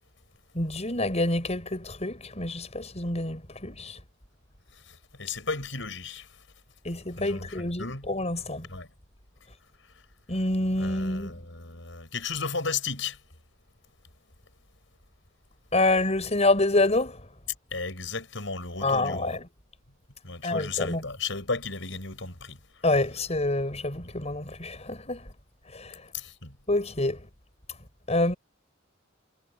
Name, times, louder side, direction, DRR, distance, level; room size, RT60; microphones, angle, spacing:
voice 1, 0.5-4.0 6.8-8.7 10.3-11.3 15.7-17.2 18.8-19.4 20.4-21.0 22.8-25.3 25.7-25.9 26.7-27.2 28.1-28.3, left 2 dB, 35° left, 5.9 m, -27 dB
voice 2, 4.9-6.3 7.2-8.1 8.7-8.9 10.8-13.2 17.7-19.4 20.2-22.6 24.0-24.1 26.1-26.5, left 4 dB, 75° left, 6.4 m, -34 dB
head